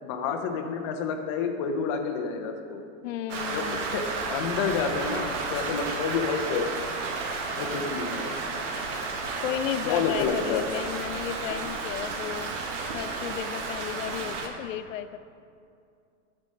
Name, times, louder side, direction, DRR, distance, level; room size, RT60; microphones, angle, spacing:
voice 1, 0.0-2.8 3.5-6.9 7.6-8.3 9.8-10.6, left 6 dB, 25° left, 5 dB, 0.3 m, -29 dB
voice 2, 3.0-3.8 9.4-12.6 12.9-15.2, left 11 dB, 75° left, 12 dB, 0.5 m, -33 dB
Rain, 3.3-14.5, right 4 dB, 65° right, 1.1 m, -32 dB
12.5 x 5.2 x 3.2 m, 2.4 s
supercardioid pair, 155°, 39 cm